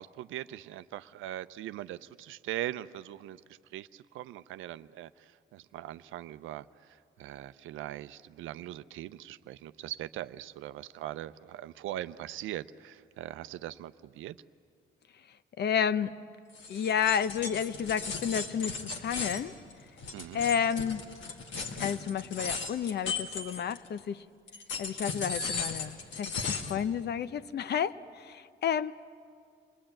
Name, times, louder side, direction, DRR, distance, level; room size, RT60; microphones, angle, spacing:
voice 1, 0.0-14.4 20.1-20.4, right 13 dB, 85° right, 14 dB, 0.6 m, -41 dB
voice 2, 15.6-16.1 16.7-19.6 20.3-21.1 21.8-24.2 24.8-28.9, left 8 dB, 55° left, 15 dB, 0.7 m, -31 dB
sound 1, 16.5-24.0 24.5-26.8, left 5 dB, 70° left, 2.2 m, -37 dB
27.5 x 20.0 x 8.9 m, 2.3 s
cardioid pair, 90°, 20 cm